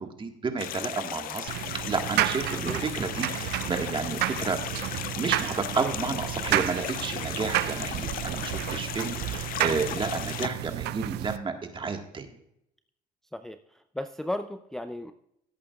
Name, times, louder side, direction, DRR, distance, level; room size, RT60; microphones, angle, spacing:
voice 1, 0.0-4.6 5.1-12.3, right 4 dB, 30° right, 5 dB, 1.6 m, -31 dB
sound 1, 0.6-10.5, left 13 dB, 60° left, 0.4 m, -36 dB
sound 2, 1.5-11.4, right 15 dB, 75° right, 0.5 m, -31 dB
voice 2, 13.3-15.1, left 1 dB, 5° left, 7 dB, 0.4 m, -35 dB
16.5 x 8.5 x 2.4 m, 0.76 s
cardioid pair, 110°, 17 cm